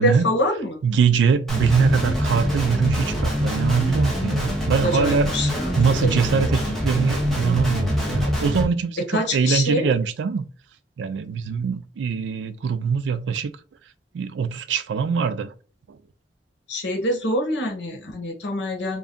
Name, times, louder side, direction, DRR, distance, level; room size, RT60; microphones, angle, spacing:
voice 1, 0.0-0.8 4.8-6.3 9.1-9.9 16.7-19.0, left 1 dB, 80° left, 0.9 m, -25 dB
voice 2, 0.8-5.3 5.8-10.5 11.0-13.5 14.1-15.5, right 6 dB, 80° right, 0.3 m, -22 dB
Guitar, 1.5-8.6, equal, ahead, 0.9 m, -24 dB
2.6 x 2.3 x 3.6 m
head